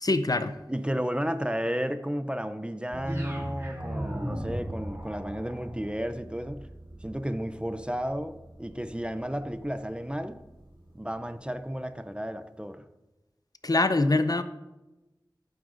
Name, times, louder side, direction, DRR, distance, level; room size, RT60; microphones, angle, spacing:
voice 1, 0.0-0.5 13.6-14.4, left 2 dB, 50° left, 0.5 m, -24 dB
voice 2, 0.7-6.7 7.0-10.4 10.9-12.8, equal, 15° right, 0.5 m, -33 dB
sound 1, 2.9-11.8, right 1 dB, 80° right, 2.1 m, -46 dB
sound 2, 3.0-11.2, equal, 30° right, 2.8 m, -40 dB
11.0 x 9.6 x 2.5 m
wide cardioid pair, 45°, 8 cm